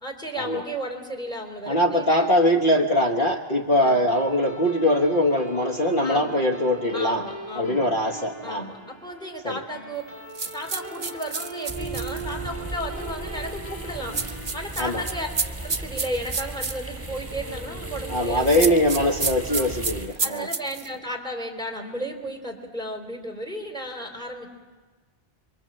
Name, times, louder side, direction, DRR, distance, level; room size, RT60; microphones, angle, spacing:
voice 1, 0.0-2.1 3.8-4.1 6.0-6.4 6.9-7.9 8.4-10.0 10.5-15.3 15.6-18.7 19.5-19.8 20.2-24.5, equal, 5° left, 2 dB, 3.8 m, -34 dB
voice 2, 1.7-7.2 7.5-8.6 9.4-9.6 14.8-15.0 18.1-20.5, left 1 dB, 55° left, 2 dB, 1.5 m, -22 dB
sound 1, 3.7-16.5, right 3 dB, 35° left, 5.2 m, -40 dB
sound 2, 10.4-12.2 14.1-16.8 18.4-20.9, right 4 dB, 45° right, 1.2 m, -29 dB
sound 3, 11.7-20.1, right 1 dB, 20° right, 4.6 m, -36 dB
26.5 x 24.0 x 7.7 m, 1.4 s
omnidirectional pair, 1.1 m